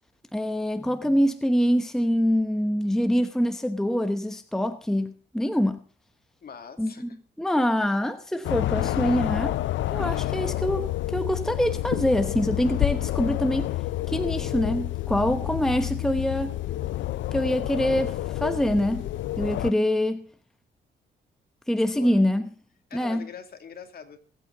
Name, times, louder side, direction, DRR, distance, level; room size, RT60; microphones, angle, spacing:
voice 1, 0.3-5.8 6.8-6.9 7.4-9.6 9.9-13.7 14.1-16.5 17.3-19.1 19.4-20.2 21.7-22.4 22.9-23.2, equal, ahead, 1.0 m, -25 dB
voice 2, 6.4-7.2 10.0-10.5 21.9-22.2 22.9-24.2, left 7 dB, 50° left, 2.6 m, -43 dB
sound 1, 8.4-19.7, left 15 dB, 70° left, 0.5 m, -29 dB
24.0 x 8.4 x 3.9 m
cardioid pair, 90°, 20 cm